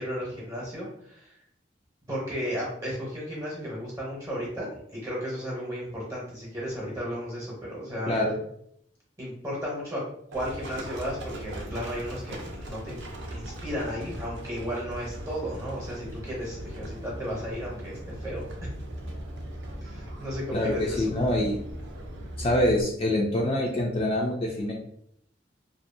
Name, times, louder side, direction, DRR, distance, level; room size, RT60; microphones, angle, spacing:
voice 1, 0.0-1.4 2.1-8.1 9.2-10.0 10.3-13.0 13.3-18.7 19.8-21.0, equal, 20° right, -5 dB, 0.8 m, -34 dB
Livestock farm animals working animals, 10.3-22.8, right 1 dB, 75° right, 0.5 m, -39 dB
voice 2, 20.5-21.6 22.4-24.7, left 1 dB, 30° left, -2 dB, 0.3 m, -25 dB
2.6 x 2.3 x 2.5 m, 0.71 s
head